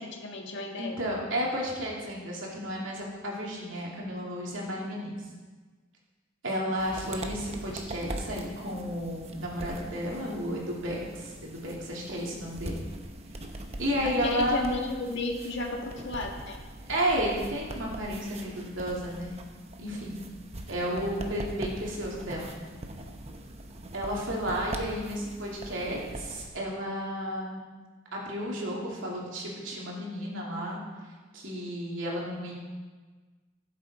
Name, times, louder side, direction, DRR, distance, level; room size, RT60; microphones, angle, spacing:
voice 1, 0.0-0.9 14.0-16.6, left 2 dB, 65° left, 2 dB, 1.6 m, -33 dB
voice 2, 0.8-5.2 6.4-12.8 13.8-14.7 16.9-19.3 19.8-20.2 20.7-22.5 23.9-27.6 28.1-30.8 31.3-32.5, equal, 70° right, -3 dB, 2.7 m, -32 dB
sound 1, 6.8-26.5, right 1 dB, 30° right, 0.9 m, -42 dB
15.5 x 7.4 x 4.2 m, 1.4 s
head